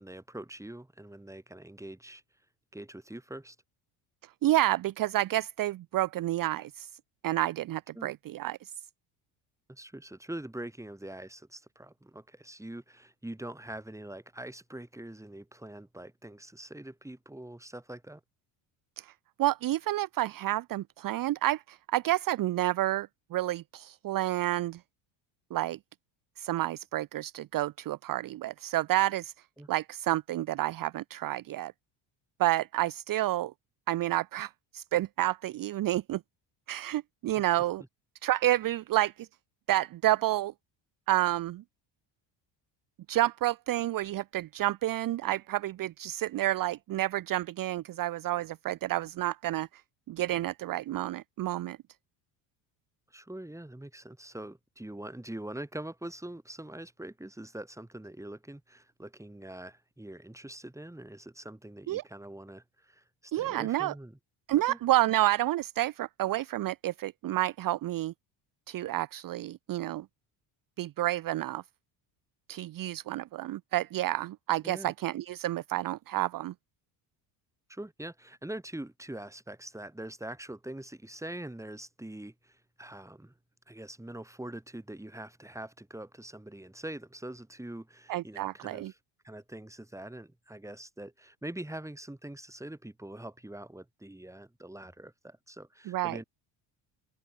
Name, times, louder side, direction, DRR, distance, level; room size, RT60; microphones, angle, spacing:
voice 1, 0.0-2.2 2.7-3.6 7.9-8.1 9.7-18.2 29.6-29.7 53.1-64.2 64.7-64.8 74.6-74.9 77.7-83.3 83.7-89.0 89.2-96.2, right 1 dB, 5° right, 6.8 m, -43 dB
voice 2, 4.4-6.9 7.2-8.7 19.0-19.1 19.4-24.8 25.5-25.8 26.4-29.3 29.7-31.7 32.4-33.5 33.9-36.2 36.7-37.8 38.2-39.3 39.7-40.5 41.1-41.6 43.1-49.8 50.1-51.8 61.9-62.0 63.3-63.9 64.5-68.1 68.7-70.1 70.8-71.6 72.5-76.5 88.1-88.9 95.9-96.2, right 15 dB, 45° right, 0.7 m, -29 dB
open air
supercardioid pair, 95°, 48 cm